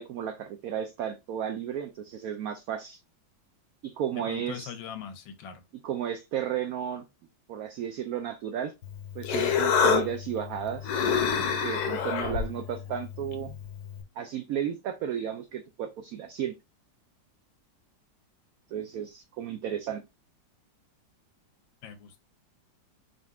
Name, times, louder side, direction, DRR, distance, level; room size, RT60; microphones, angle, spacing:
voice 1, 0.0-3.0 3.8-4.7 5.8-7.0 7.5-8.7 9.1-10.9 11.6-13.5 14.2-16.5 18.7-20.0, right 9 dB, 80° right, 0.8 m, -33 dB
voice 2, 4.3-5.6 21.8-22.2, left 8 dB, 90° left, 1.6 m, -41 dB
Human voice, 8.8-14.0, left 6 dB, 65° left, 1.1 m, -28 dB
4.2 x 3.9 x 2.4 m
omnidirectional pair, 2.0 m